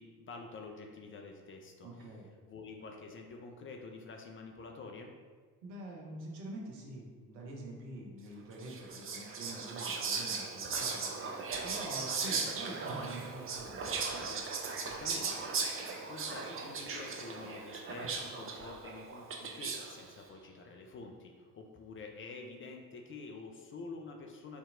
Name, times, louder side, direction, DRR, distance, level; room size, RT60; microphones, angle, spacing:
voice 1, 0.0-2.1 2.5-5.1 14.8-15.5 15.8-24.6, left 3 dB, 30° left, 2 dB, 0.4 m, -48 dB
voice 2, 1.8-2.3 5.6-13.9, right 1 dB, 85° right, -1 dB, 0.7 m, -46 dB
Whispering, 8.6-20.0, right 4 dB, 25° right, 0.5 m, -38 dB
4.2 x 2.7 x 2.4 m, 1.5 s
figure-of-eight pair, 50°, 49 cm